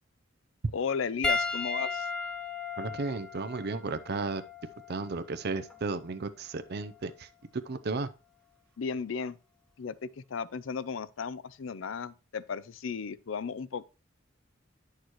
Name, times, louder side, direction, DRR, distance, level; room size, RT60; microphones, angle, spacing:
voice 1, 0.7-2.1 8.8-9.3 9.8-13.8, left 6 dB, 75° left, 0.5 m, -35 dB
Piano, 1.2-5.9 6.8-7.0 9.0-9.1, left 3 dB, 5° left, 0.5 m, -35 dB
voice 2, 2.8-4.4 4.9-7.3 7.7-8.1, right 3 dB, 55° right, 0.6 m, -34 dB
9.5 x 6.6 x 3.0 m
head